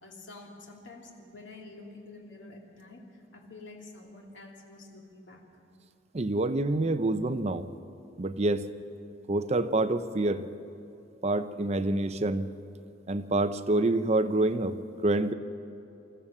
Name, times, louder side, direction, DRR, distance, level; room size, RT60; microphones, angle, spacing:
voice 1, 0.0-3.0 3.3-5.4, left 2 dB, 85° left, -1 dB, 2.8 m, -48 dB
voice 2, 6.1-7.7 8.2-8.7 9.3-10.5 11.2-12.5 13.1-15.3, right 2 dB, 35° right, 10 dB, 0.7 m, -27 dB
25.0 x 14.5 x 7.3 m, 2.7 s
head